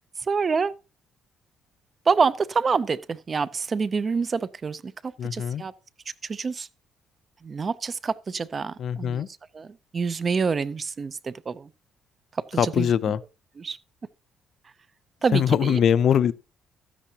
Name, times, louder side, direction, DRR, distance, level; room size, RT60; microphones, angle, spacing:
voice 1, 0.3-0.8 2.1-5.7 6.2-6.7 7.4-9.3 9.5-11.7 12.5-12.9 13.6-13.8 15.2-15.8, right 5 dB, 30° right, 0.5 m, -27 dB
voice 2, 5.2-5.6 8.8-9.3 12.6-13.2 15.3-16.3, left 9 dB, 55° left, 0.4 m, -22 dB
13.0 x 10.0 x 2.8 m
cardioid pair, 140°, 0 cm